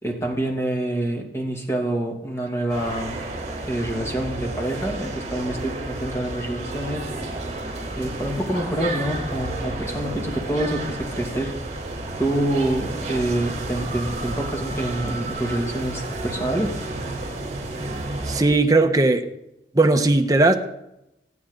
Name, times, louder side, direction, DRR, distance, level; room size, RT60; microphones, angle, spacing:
voice 1, 0.0-3.2 3.6-7.1 7.9-11.5 12.2-16.8, right 1 dB, 15° left, 2.5 m, -26 dB
sound 1, 2.7-18.4, right 2 dB, 40° right, 4.0 m, -31 dB
voice 2, 18.3-19.3 19.7-20.5, right 2 dB, 20° right, 1.1 m, -17 dB
26.0 x 9.5 x 3.9 m
head